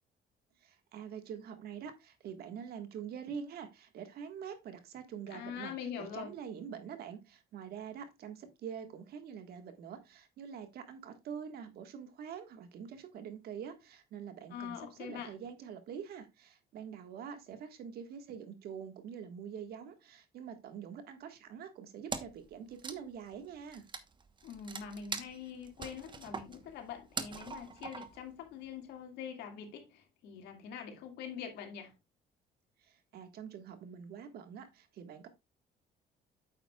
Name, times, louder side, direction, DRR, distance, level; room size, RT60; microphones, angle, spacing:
voice 1, 0.6-5.7 6.0-23.8 32.8-35.3, right 7 dB, 65° right, 1.7 m, -45 dB
voice 2, 5.3-6.3 14.5-15.3 24.4-31.9, left 7 dB, 80° left, 2.2 m, -44 dB
Wood, 22.1-22.5 22.7-28.3, right 5 dB, 30° right, 1.1 m, -42 dB
9.0 x 7.6 x 2.4 m
cardioid pair, 110°, 17 cm